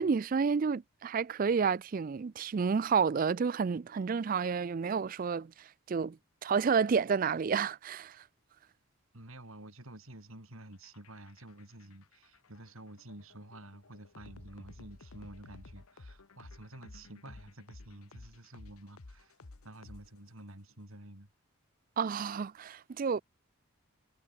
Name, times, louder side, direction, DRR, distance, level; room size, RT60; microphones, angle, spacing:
voice 1, 0.0-6.2 6.4-8.2 22.0-23.2, right 5 dB, 40° right, 0.3 m, -30 dB
voice 2, 9.1-19.4 19.6-21.3, right 1 dB, 75° right, 4.4 m, -50 dB
sound 1, 10.7-20.5, left 2 dB, 85° left, 1.1 m, -53 dB
head